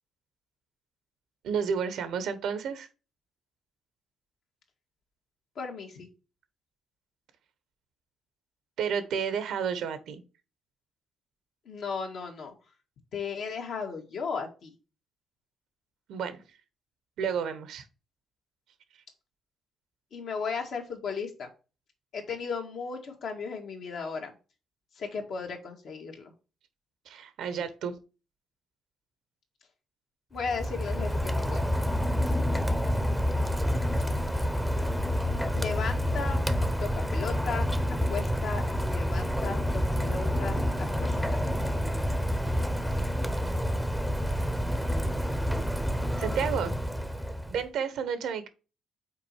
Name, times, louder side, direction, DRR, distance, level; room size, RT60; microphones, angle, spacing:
voice 1, 1.4-2.9 8.8-10.2 16.1-16.4 17.2-17.8 27.1-27.9 46.2-46.7 47.5-48.5, right 7 dB, 80° right, 11 dB, 1.0 m, -31 dB
voice 2, 5.6-6.1 11.7-12.5 13.1-14.7 20.1-21.5 22.1-24.3 25.0-26.3 30.3-31.6 35.5-36.4 36.8-37.7 38.1-39.6 40.0-41.4, left 5 dB, 70° left, 2 dB, 1.8 m, -35 dB
Rain, 30.4-47.6, equal, ahead, 0.8 m, -28 dB
5.9 x 4.2 x 4.5 m, 0.32 s
cardioid pair, 90°, 0 cm